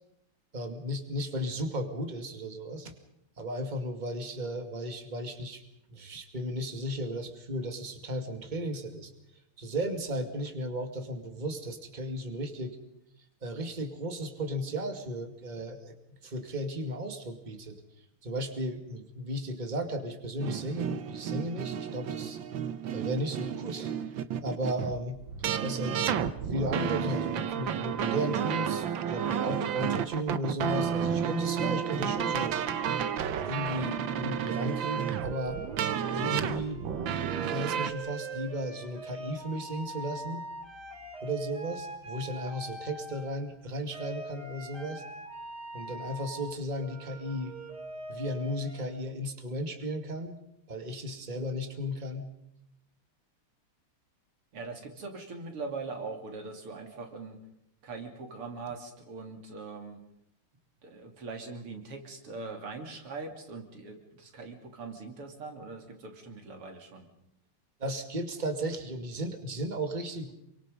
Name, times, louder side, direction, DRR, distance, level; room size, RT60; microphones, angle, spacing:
voice 1, 0.5-2.9 3.4-5.6 5.9-9.1 9.6-12.8 13.4-17.8 18.2-22.4 22.9-25.2 25.6-32.6 33.5-35.6 36.1-36.8 37.4-40.4 41.2-45.0 45.7-47.6 48.1-50.4 50.7-52.3 67.8-70.3, equal, 20° right, 5 dB, 2.3 m, -35 dB
sound 1, 20.4-37.9, right 8 dB, 65° right, 1.7 m, -31 dB
sound 2, 33.3-43.6 43.9-48.8, right 4 dB, 50° right, 3.3 m, -42 dB
voice 2, 54.5-57.4 57.8-60.0 60.8-67.1, right 3 dB, 90° right, 4 dB, 3.9 m, -41 dB
27.5 x 24.5 x 5.4 m, 0.77 s
omnidirectional pair, 2.4 m